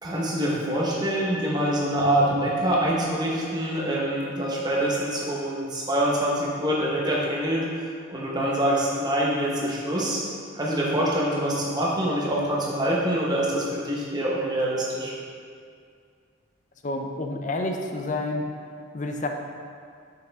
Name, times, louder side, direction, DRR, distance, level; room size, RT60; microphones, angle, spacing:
voice 1, 0.0-7.6 8.1-10.2 10.5-15.1, right 1 dB, 20° right, -4 dB, 0.9 m, -25 dB
voice 2, 16.8-18.5 18.9-19.3, left 2 dB, 35° left, 4 dB, 0.5 m, -29 dB
6.1 x 5.7 x 3.5 m, 2.2 s
head